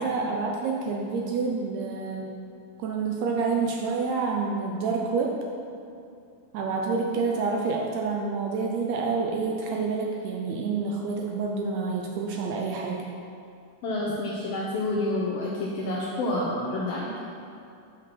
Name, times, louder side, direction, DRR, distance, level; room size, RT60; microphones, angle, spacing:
voice 1, 0.0-2.3 2.8-5.4 6.5-13.0, right 4 dB, 80° right, 0 dB, 1.6 m, -28 dB
voice 2, 13.8-17.1, left 2 dB, 85° left, -4 dB, 1.3 m, -28 dB
7.4 x 5.0 x 5.8 m, 2.5 s
omnidirectional pair, 3.7 m